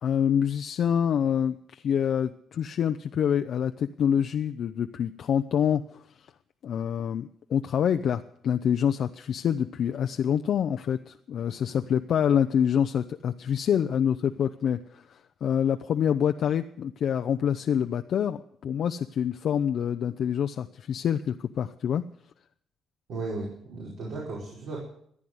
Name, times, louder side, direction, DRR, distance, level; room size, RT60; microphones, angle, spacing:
voice 1, 0.0-6.0 6.6-22.0, left 8 dB, 65° left, 7 dB, 0.5 m, -26 dB
voice 2, 23.1-24.8, right 3 dB, 75° right, -5 dB, 5.3 m, -35 dB
14.5 x 9.8 x 7.8 m, 0.68 s
cardioid pair, 90°, 0 cm